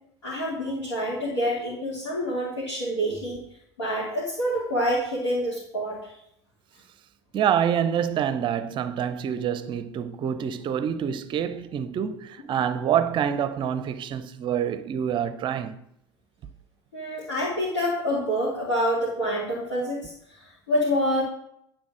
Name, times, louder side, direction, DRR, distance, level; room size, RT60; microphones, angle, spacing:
voice 1, 0.2-3.4 3.8-6.1 16.9-20.1 20.7-21.2, equal, 75° left, 2.3 m, -27 dB
voice 2, 7.3-15.8, right 9 dB, 35° right, 0.6 m, -26 dB
9.7 x 3.7 x 6.1 m
figure-of-eight pair, 70°, 15 cm